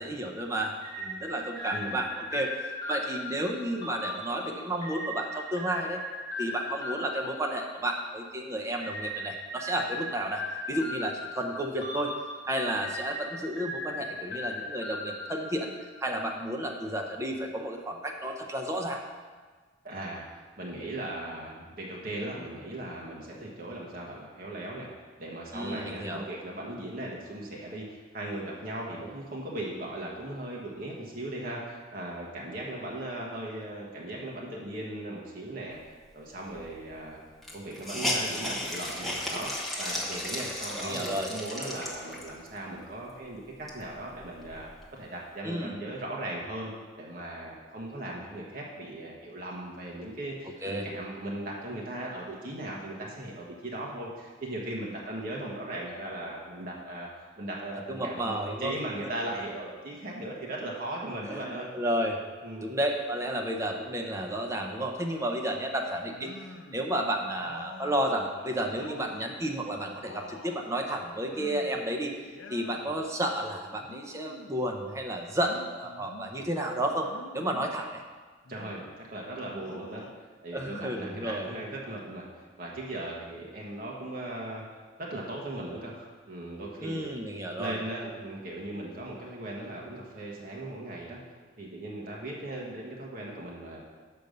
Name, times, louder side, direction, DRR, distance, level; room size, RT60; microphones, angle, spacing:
voice 1, 0.0-6.0 6.4-12.1 12.5-15.7 16.0-19.0 25.5-26.3 40.8-41.3 45.4-45.8 50.6-50.9 57.9-58.7 61.2-62.2 62.6-66.3 66.7-78.0 80.5-81.5 86.8-87.8, right 1 dB, 15° right, 2 dB, 0.6 m, -32 dB
sound 1, 0.8-8.2 8.8-16.1, left 1 dB, 20° left, 2.5 m, -38 dB
voice 2, 1.7-2.0 19.8-20.2 20.6-24.9 25.2-35.8 36.1-37.2 37.5-39.5 39.8-46.7 47.0-57.1 57.4-61.7 62.4-62.7 72.8-72.9 78.5-80.0 80.4-84.6 85.0-87.2 87.6-91.2 91.6-93.8, right 1 dB, 50° right, -3 dB, 1.2 m, -38 dB
Hiss, 36.6-36.7 36.9-37.0 37.4-42.5 43.0-43.1 43.5-44.9, left 1 dB, ahead, 1.0 m, -34 dB
sound 2, 66.1-66.9 67.4-69.3 69.7-70.7 71.3-71.9 72.2-73.0 73.8-74.6 75.4-76.3 77.1-77.8 78.4-79.1 79.6-80.2 80.6-81.7, left 3 dB, 75° left, 0.6 m, -48 dB
6.8 x 5.2 x 6.6 m, 1.4 s
head